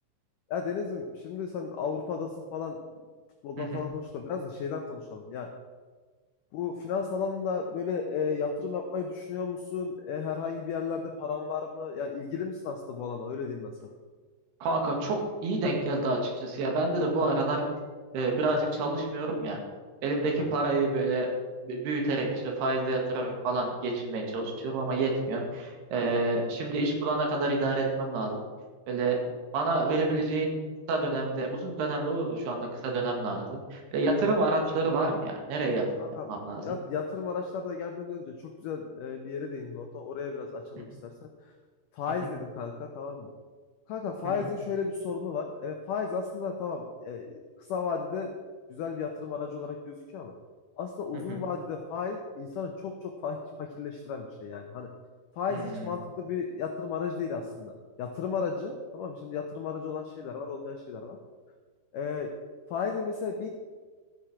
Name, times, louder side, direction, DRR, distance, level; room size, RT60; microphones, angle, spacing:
voice 1, 0.5-2.8 3.4-5.5 6.5-13.9 20.4-20.5 36.0-36.3 36.6-41.5 41.9-43.3 43.9-48.3 48.7-50.3 50.8-54.9 55.4-57.7 58.0-61.2 61.9-62.3 62.7-63.5, left 5 dB, 85° left, 3 dB, 1.8 m, -34 dB
voice 2, 14.6-17.6 18.1-19.6 20.0-21.3 21.6-28.4 28.9-29.2 29.5-30.6 30.9-36.6 44.2-44.3 51.3-51.4 55.5-55.9, right 2 dB, 70° right, 1 dB, 3.7 m, -28 dB
15.0 x 7.4 x 4.9 m, 1.4 s
omnidirectional pair, 5.0 m